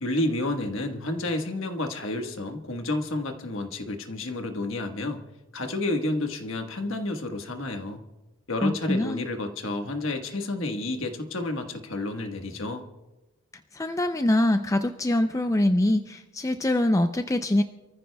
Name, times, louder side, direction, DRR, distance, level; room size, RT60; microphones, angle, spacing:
voice 1, 0.0-5.2 5.5-8.0 8.5-12.8, left 2 dB, 65° left, 5 dB, 1.4 m, -30 dB
voice 2, 8.6-9.2 13.7-17.6, left 1 dB, 15° left, 7 dB, 0.4 m, -24 dB
28.5 x 14.5 x 2.3 m, 1.1 s
head